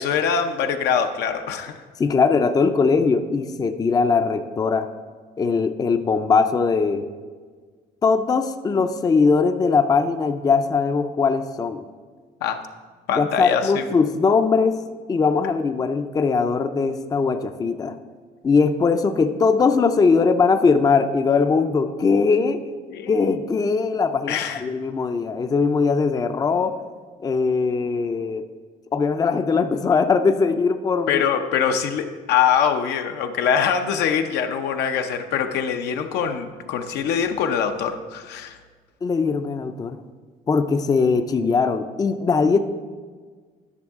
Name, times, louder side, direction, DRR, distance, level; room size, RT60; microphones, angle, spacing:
voice 1, 0.0-1.8 12.4-12.6 13.1-13.9 22.9-23.1 24.3-24.6 31.1-38.6, left 7 dB, 80° left, 6 dB, 0.7 m, -23 dB
voice 2, 2.0-4.9 5.4-7.1 8.0-11.9 13.1-14.8 15.1-18.0 18.4-22.6 23.1-26.8 27.2-28.4 28.9-31.2 39.0-40.0 40.5-42.6, left 4 dB, 20° left, 9 dB, 0.4 m, -20 dB
11.0 x 6.2 x 3.6 m, 1.5 s
cardioid pair, 110°, 17 cm